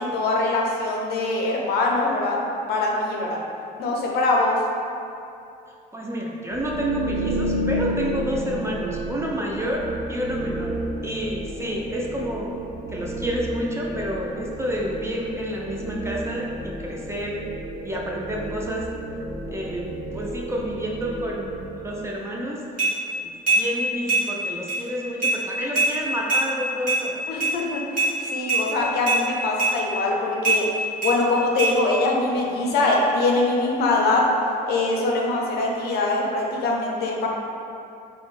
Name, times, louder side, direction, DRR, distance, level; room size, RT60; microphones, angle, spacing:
voice 1, 0.0-2.4 2.7-3.4 3.8-4.6 27.3-34.3 34.7-37.3, left 2 dB, 70° left, -1 dB, 0.5 m, -23 dB
voice 2, 5.9-10.8 11.0-12.5 12.9-17.4 17.8-18.9 19.4-22.6 23.1-27.2, equal, 15° right, -2 dB, 0.3 m, -29 dB
sound 1, 6.5-22.3, right 1 dB, 75° right, 0.5 m, -31 dB
sound 2, 22.8-22.9 23.5-23.6 24.1-24.2 24.7-24.8 25.2-25.4 25.8-25.9 26.3-26.4 26.9-27.0 27.4-27.5 28.0-28.1 28.5-28.6 29.1-29.2 29.6-29.7 30.4-30.6 31.0-31.1 31.6-31.7, right 3 dB, 50° right, 1.3 m, -21 dB
3.9 x 2.1 x 2.4 m, 2.6 s
cardioid pair, 110°, 17 cm